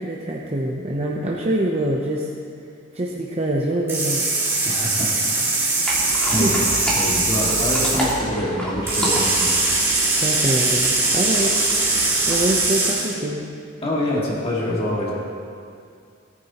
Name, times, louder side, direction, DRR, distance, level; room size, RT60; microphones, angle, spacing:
voice 1, 0.0-2.3 2.9-4.2 6.2-6.5 10.2-11.6 12.3-13.5, right 1 dB, 30° right, -3 dB, 0.8 m, -24 dB
sound 1, 3.9-8.2 8.9-13.2, right 3 dB, 15° right, 2.5 m, -21 dB
voice 2, 4.7-5.7 6.3-6.6 6.9-9.6 13.8-15.1, left 1 dB, 30° left, -5 dB, 2.1 m, -26 dB
sound 2, 5.8-12.7, equal, 5° left, 2.4 m, -30 dB
17.5 x 9.6 x 3.0 m, 2.4 s
head